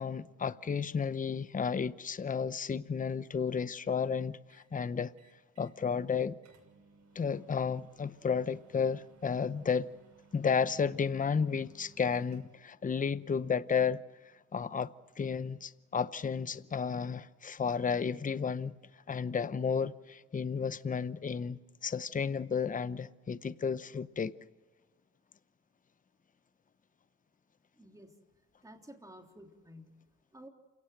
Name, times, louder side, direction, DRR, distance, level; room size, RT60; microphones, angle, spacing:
voice 1, 0.0-5.1 5.6-6.4 7.1-9.9 10.3-14.0 14.5-18.7 19.1-24.3, left 6 dB, 25° left, 0.8 m, -32 dB
sound 1, 4.5-4.7 5.2-5.8 6.1-6.2 6.4-12.7, right 4 dB, 65° right, 6.6 m, -63 dB
voice 2, 27.8-28.1 28.6-29.9 30.3-30.5, equal, 10° right, 3.5 m, -52 dB
28.0 x 18.0 x 8.0 m
cardioid pair, 90°, 30 cm